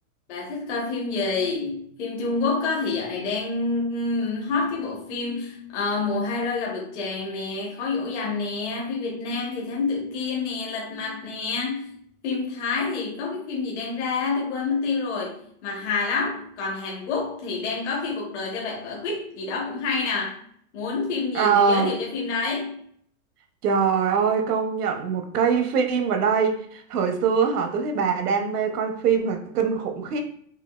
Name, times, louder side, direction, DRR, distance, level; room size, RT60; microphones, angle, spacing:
voice 1, 0.3-12.0 12.2-20.4 20.7-22.8, left 4 dB, 50° left, -2 dB, 1.1 m, -28 dB
voice 2, 21.3-21.9 23.6-30.2, right 6 dB, 85° right, 5 dB, 0.8 m, -23 dB
5.2 x 2.4 x 2.3 m, 0.63 s
supercardioid pair, 170°, 45 cm